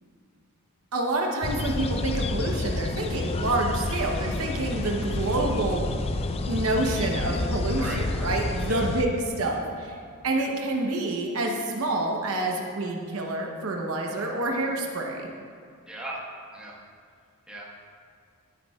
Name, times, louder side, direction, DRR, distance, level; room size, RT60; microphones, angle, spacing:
voice 1, 0.9-5.9 6.5-10.0 10.2-15.3, right 2 dB, 70° right, 1 dB, 0.9 m, -28 dB
sound 1, 1.4-9.0, left 2 dB, 25° left, 0.3 m, -29 dB
voice 2, 15.9-16.2 16.5-16.8 17.5-17.6, right 1 dB, 5° right, -5 dB, 1.4 m, -37 dB
12.5 x 8.6 x 2.3 m, 2.2 s
head